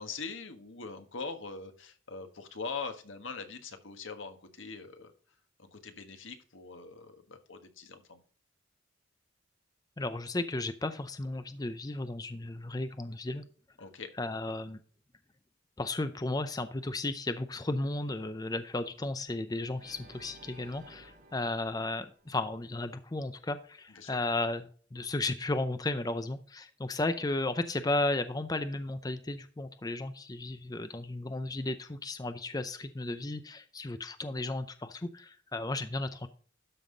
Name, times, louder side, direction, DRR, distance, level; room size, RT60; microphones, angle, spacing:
voice 1, 0.0-5.1 5.6-8.2 13.8-14.1 23.9-24.2, left 4 dB, 80° left, 7 dB, 1.5 m, -42 dB
voice 2, 10.0-13.4 14.2-14.8 15.8-36.3, left 2 dB, 20° left, 11 dB, 0.5 m, -34 dB
Organ, 19.8-22.9, right 1 dB, 50° right, 3.9 m, -56 dB
12.5 x 5.6 x 3.9 m, 0.43 s
head